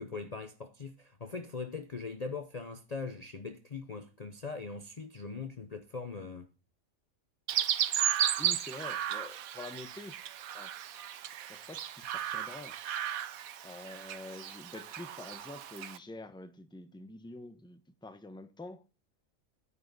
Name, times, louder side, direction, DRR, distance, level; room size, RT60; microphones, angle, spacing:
voice 1, 0.0-6.5, left 4 dB, 35° left, 0.8 m, -41 dB
Chirp tweet, 7.5-16.0, right 10 dB, 85° right, 1.2 m, -34 dB
voice 2, 8.4-10.2 10.5-10.7 11.1-12.7 13.6-18.8, left 2 dB, 5° left, 0.9 m, -47 dB
9.7 x 7.5 x 4.0 m
omnidirectional pair, 1.4 m